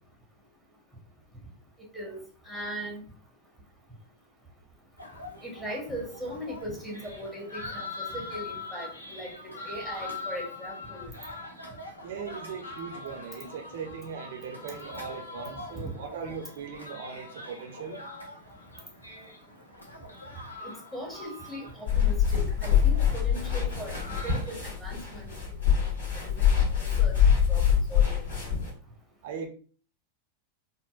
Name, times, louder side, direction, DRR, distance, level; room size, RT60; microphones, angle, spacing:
voice 1, 1.9-3.0 5.4-11.1 15.7-15.8 20.6-25.6 26.1-26.6 27.0-27.1 27.5-28.2, equal, 5° left, -3 dB, 1.1 m, -39 dB
sound 1, 5.0-24.5, left 3 dB, 85° left, 0.6 m, -43 dB
voice 2, 12.0-18.0 29.2-29.5, right 6 dB, 55° right, 4 dB, 0.6 m, -39 dB
sound 2, 21.9-28.7, left 8 dB, 65° left, 1.4 m, -24 dB
3.8 x 2.0 x 2.4 m, 0.40 s
figure-of-eight pair, 90°, 0 cm